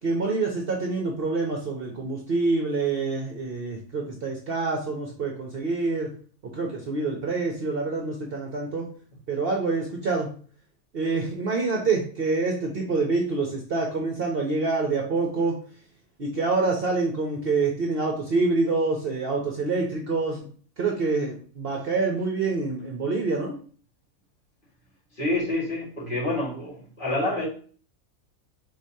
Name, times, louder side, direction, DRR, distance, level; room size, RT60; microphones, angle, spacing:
voice 1, 0.0-6.1 6.4-8.9 9.3-10.3 10.9-15.6 16.2-20.5 20.8-23.6, right 3 dB, 50° right, 0 dB, 0.8 m, -26 dB
voice 2, 25.1-27.5, left 2 dB, 35° left, -6 dB, 1.8 m, -27 dB
4.9 x 3.8 x 2.8 m, 0.43 s
omnidirectional pair, 1.5 m